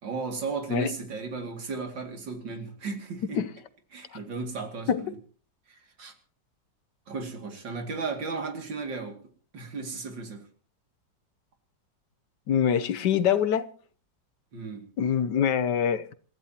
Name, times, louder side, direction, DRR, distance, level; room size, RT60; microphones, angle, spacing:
voice 1, 0.0-3.4 3.9-5.1 5.7-6.1 7.1-9.2 9.5-10.4 14.5-14.8, right 4 dB, 80° right, 3.2 m, -35 dB
voice 2, 12.5-13.7 15.0-16.1, left 8 dB, 70° left, 1.4 m, -24 dB
27.5 x 14.5 x 2.9 m
omnidirectional pair, 2.0 m